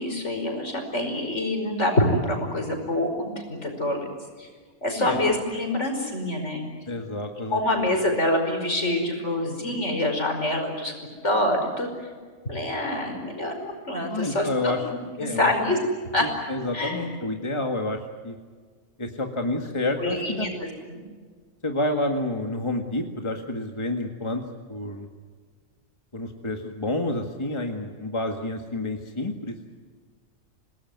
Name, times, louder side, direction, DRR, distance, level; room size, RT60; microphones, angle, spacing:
voice 1, 0.0-4.1 4.4-4.5 4.8-6.6 7.5-10.9 11.2-11.9 12.5-14.8 15.2-15.8 16.1-16.3 16.7-17.1 20.0-20.5 20.9-21.0, left 1 dB, 60° left, 4 dB, 5.5 m, -26 dB
voice 2, 6.9-7.6 14.1-14.9 15.2-15.5 16.2-18.4 19.0-20.5 21.6-24.4 24.7-25.1 26.1-29.6, left 2 dB, 20° left, 3 dB, 1.9 m, -29 dB
27.5 x 19.0 x 9.5 m, 1.5 s
omnidirectional pair, 1.4 m